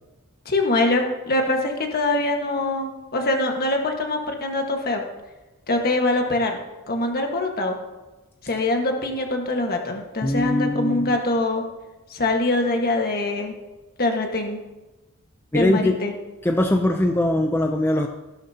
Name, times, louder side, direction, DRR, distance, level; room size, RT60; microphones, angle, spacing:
voice 1, 0.4-5.0 5.7-6.6 6.9-7.8 8.4-11.6 12.1-13.5 14.0-14.6 15.5-16.1, left 2 dB, 45° left, 2 dB, 1.5 m, -23 dB
voice 2, 10.2-11.2 15.5-16.0 16.4-18.1, left 1 dB, 10° left, 4 dB, 0.5 m, -21 dB
15.0 x 12.0 x 2.8 m, 1.1 s
head